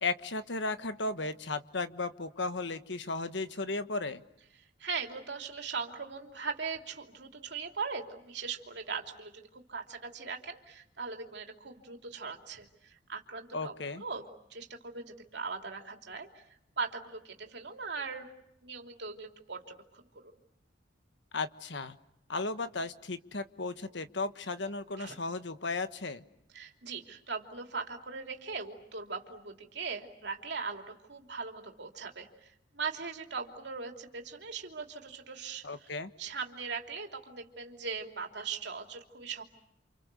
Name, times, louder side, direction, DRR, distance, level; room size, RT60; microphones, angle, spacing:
voice 1, 0.0-4.2 13.5-14.0 21.3-21.9 22.3-26.2 35.6-36.1, left 3 dB, 70° left, 11 dB, 1.4 m, -35 dB
voice 2, 4.8-14.2 14.5-18.3 18.6-20.3 25.0-25.2 26.5-35.9 36.2-39.4, right 5 dB, 65° right, 3 dB, 3.1 m, -40 dB
29.5 x 27.5 x 6.9 m, 0.81 s
head